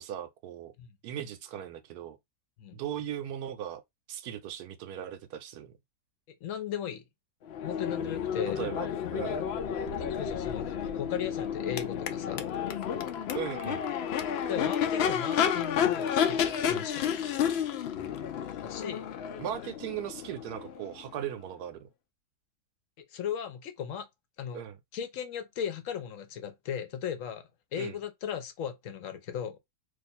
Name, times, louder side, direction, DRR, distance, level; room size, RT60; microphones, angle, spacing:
voice 1, 0.0-0.7 1.0-2.2 2.7-3.8 4.1-5.7 8.6-9.4 13.3-13.9 19.4-21.9 24.5-24.8 27.8-28.0, right 9 dB, 85° right, 1.1 m, -38 dB
voice 2, 6.4-7.0 7.6-8.6 9.9-10.7 11.0-12.5 14.5-17.1 18.6-19.1 23.0-24.1 24.4-24.6 24.9-29.6, left 8 dB, 65° left, 1.0 m, -37 dB
Crowd / Race car auto racing / Accelerating revving vroom, 7.5-21.3, left 8 dB, 90° left, 0.5 m, -31 dB
2.6 x 2.4 x 4.1 m
omnidirectional pair, 1.6 m